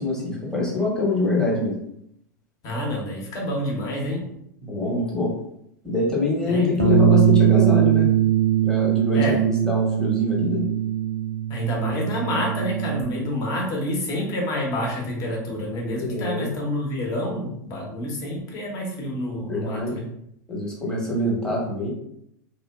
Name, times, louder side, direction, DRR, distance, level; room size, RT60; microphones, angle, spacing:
voice 1, 0.0-1.8 4.6-5.3 5.8-8.1 8.6-10.6 16.0-16.5 19.5-19.9 20.5-21.9, left 2 dB, 5° left, -5 dB, 0.9 m, -24 dB
voice 2, 2.6-4.2 6.5-6.9 9.1-9.4 11.5-20.0, left 1 dB, 35° left, -1 dB, 0.8 m, -28 dB
Bass guitar, 6.8-13.0, right 11 dB, 85° right, 0.4 m, -21 dB
2.7 x 2.1 x 2.3 m, 0.75 s
figure-of-eight pair, 90°, 10 cm